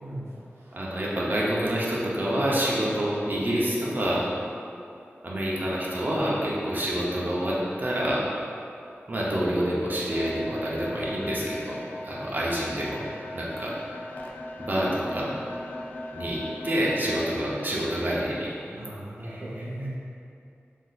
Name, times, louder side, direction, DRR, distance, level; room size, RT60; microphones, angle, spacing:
voice 1, 0.0-0.7 18.7-20.0, right 1 dB, 90° right, -7 dB, 0.5 m, -37 dB
voice 2, 0.7-4.3 5.2-8.3 9.1-13.0 13.3-13.7 14.7-15.3 16.1-18.5 19.2-19.7, equal, 45° right, -6 dB, 0.6 m, -27 dB
sound 1, 10.1-17.3, left 1 dB, 40° left, 0.4 m, -38 dB
3.5 x 2.6 x 2.3 m, 2.6 s
wide cardioid pair, 45°, 5 cm